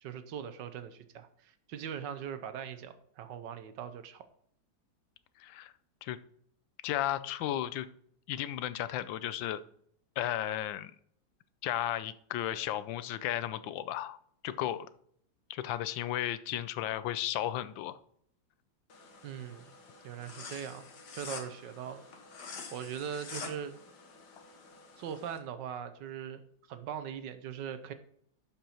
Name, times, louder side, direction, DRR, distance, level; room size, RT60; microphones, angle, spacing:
voice 1, 0.0-4.2 19.2-19.7 20.0-20.9 21.1-22.0 22.7-23.8 25.0-27.9, right 8 dB, 70° right, 10 dB, 1.4 m, -41 dB
voice 2, 5.4-5.7 6.0-6.2 6.8-7.9 8.3-9.6 10.2-10.9 11.6-14.2 14.4-14.8 15.5-18.0, left 12 dB, 80° left, 14 dB, 1.3 m, -34 dB
sound 1, 18.9-25.4, left 5 dB, 60° left, 1.9 m, -47 dB
11.5 x 5.4 x 4.3 m, 0.66 s
omnidirectional pair, 2.1 m